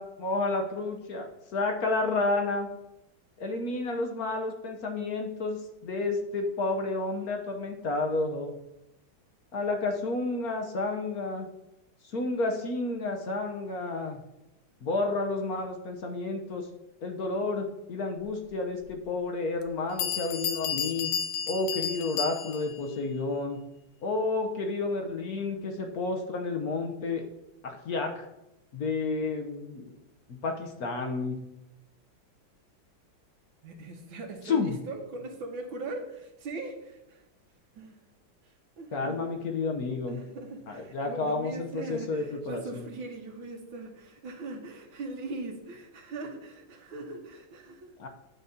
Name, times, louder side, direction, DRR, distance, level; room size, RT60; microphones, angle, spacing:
voice 1, 0.0-2.7 3.4-8.5 9.5-11.5 12.1-14.2 14.8-16.7 17.0-21.1 21.5-23.6 24.0-27.2 27.6-28.2 28.7-29.9 30.3-31.4 34.4-34.8 38.9-40.2 40.7-42.9 48.0-48.1, left 3 dB, 55° left, 3 dB, 1.3 m, -31 dB
Bell, 18.8-18.9 19.6-19.7 20.0-22.8, left 7 dB, 90° left, 1.5 m, -32 dB
voice 2, 33.6-37.2 37.8-38.0 38.8-39.2 40.0-47.9, right 3 dB, 75° right, 3 dB, 2.0 m, -40 dB
9.1 x 4.1 x 7.1 m, 0.89 s
omnidirectional pair, 2.1 m